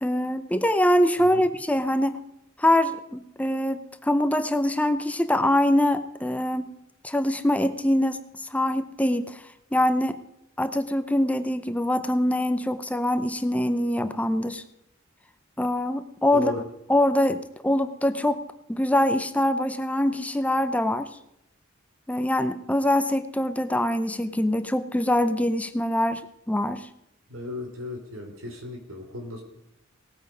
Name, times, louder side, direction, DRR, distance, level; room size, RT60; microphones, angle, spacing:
voice 1, 0.0-2.2 2.6-6.7 7.0-9.4 9.7-10.2 10.6-14.6 15.6-16.5 16.9-18.4 18.7-21.1 22.1-26.9, left 1 dB, 5° left, 11 dB, 0.5 m, -24 dB
voice 2, 27.3-29.4, left 1 dB, 85° right, 4 dB, 3.0 m, -35 dB
18.5 x 8.9 x 5.2 m, 0.85 s
head